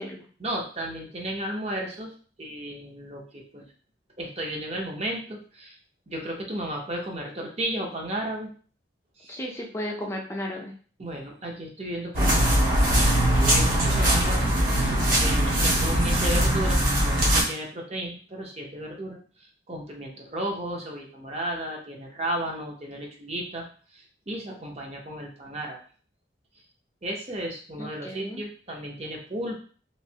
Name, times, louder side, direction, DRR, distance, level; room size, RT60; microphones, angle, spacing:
voice 1, 0.4-2.1 2.4-3.7 4.2-5.8 6.1-8.5 9.2-9.4 11.0-12.5 13.3-19.2 19.7-23.7 23.9-25.8 27.0-29.6, right 1 dB, 35° right, 0 dB, 0.7 m, -34 dB
voice 2, 9.3-10.7 27.8-28.4, left 1 dB, 15° left, -1 dB, 0.5 m, -34 dB
sound 1, 12.1-17.4, right 1 dB, 50° right, 1.3 m, -21 dB
3.1 x 2.6 x 2.7 m, 0.42 s
head